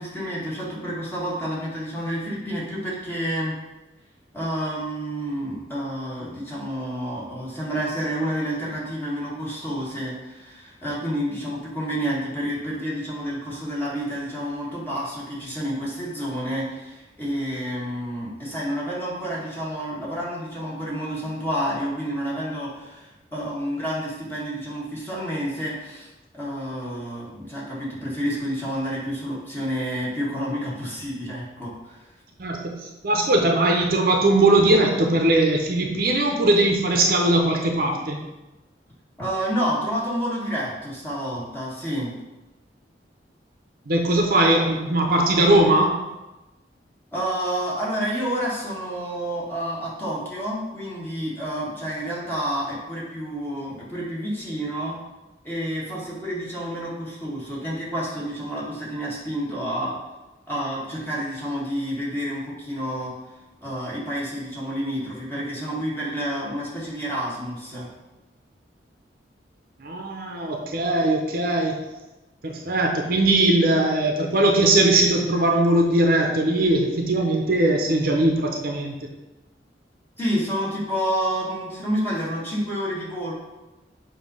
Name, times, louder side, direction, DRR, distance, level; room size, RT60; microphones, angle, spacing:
voice 1, 0.0-3.5 4.3-26.1 26.3-32.0 39.2-42.1 47.1-55.0 55.4-59.9 60.5-63.1 63.6-67.9 80.2-83.3, equal, 15° left, -7 dB, 1.8 m, -29 dB
voice 2, 32.4-38.2 43.9-46.0 69.8-71.8 72.4-78.9, right 2 dB, 55° right, 1 dB, 0.8 m, -20 dB
7.1 x 2.9 x 5.5 m, 1.0 s
head